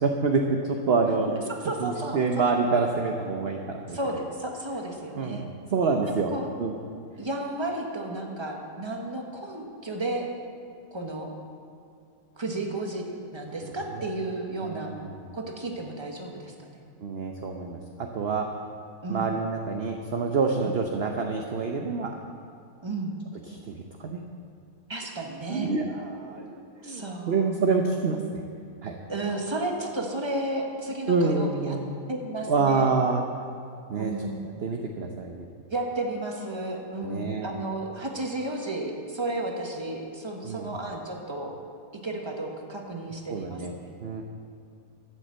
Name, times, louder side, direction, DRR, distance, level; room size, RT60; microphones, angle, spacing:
voice 1, 0.0-1.3 1.8-4.0 5.1-5.4 5.7-6.3 6.6-6.8 13.6-13.7 14.0-14.1 14.6-15.2 17.0-18.6 19.1-22.2 23.5-24.2 25.5-28.4 28.8-29.0 31.0-31.9 32.5-33.3 33.9-34.1 34.6-35.5 37.0-37.5 40.4-40.7 43.3-43.7 44.0-44.2, right 4 dB, 50° right, 2 dB, 0.9 m, -27 dB
voice 2, 1.2-2.5 3.9-5.4 6.3-6.5 7.2-10.3 10.9-11.3 12.4-13.0 13.3-14.9 15.3-16.8 19.0-19.3 20.6-20.7 22.8-23.1 24.9-25.7 26.8-27.5 29.1-31.8 32.1-32.9 34.0-34.3 35.7-41.5 42.0-43.9, right 2 dB, 20° right, 1 dB, 1.4 m, -33 dB
12.5 x 8.3 x 7.6 m, 2.5 s
omnidirectional pair, 1.6 m